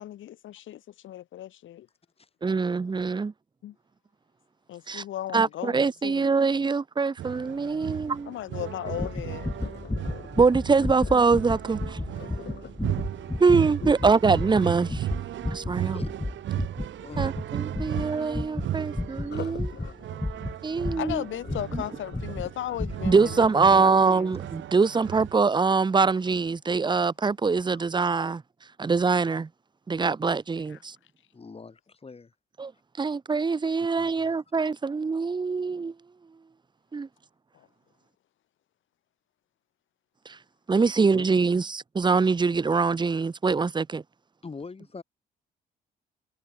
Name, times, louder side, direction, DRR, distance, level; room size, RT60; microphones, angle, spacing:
voice 1, 0.0-1.9 3.6-3.7 4.7-6.3 8.3-9.5 13.8-13.9 21.0-23.4 23.7-24.3 30.7-30.8 37.5-37.7, left 12 dB, 75° left, 3.3 m, -36 dB
voice 2, 2.4-3.3 4.9-5.0 5.3-8.3 10.4-12.0 13.4-15.1 15.5-16.0 17.2-19.7 20.6-21.2 21.7-21.8 23.0-28.4 28.8-29.5 29.9-31.0 32.6-32.7 33.0-35.9 36.9-37.1 40.3-40.4 40.7-44.0, right 4 dB, 20° right, 0.9 m, -24 dB
sound 1, 7.2-25.4, right 12 dB, 70° right, 1.1 m, -36 dB
Sink (filling or washing), 8.8-14.8 19.2-26.2 26.7-27.0 27.5-27.6, left 9 dB, 60° left, 3.0 m, -47 dB
sound 2, 8.9-21.9 22.1-22.5 22.8-23.2 23.4-23.5, left 2 dB, 10° left, 2.0 m, -33 dB
voice 3, 13.1-13.4 15.8-16.1 17.0-17.4 23.3-23.4 26.9-27.0 27.7-27.8 31.3-32.3 33.0-33.2 34.0-34.4 41.1-41.5 44.4-45.0, left 4 dB, 30° left, 5.5 m, -44 dB
cardioid pair, 90°, 20 cm